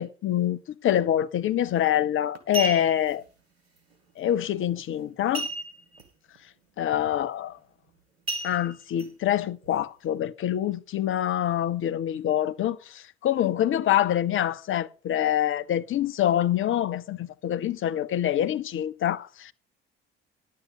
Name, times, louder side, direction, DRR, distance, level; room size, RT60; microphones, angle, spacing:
voice 1, 0.0-3.2 4.2-5.5 6.8-7.6 8.4-19.5, left 11 dB, 45° left, 0.7 m, -26 dB
sound 1, 1.7-1.9 2.3-3.1 5.3-6.0 6.3-6.4 6.9-7.2 8.3-9.1 9.6-9.7, right 2 dB, 90° right, 1.3 m, -33 dB
10.5 x 8.5 x 4.9 m
figure-of-eight pair, 50°, 30 cm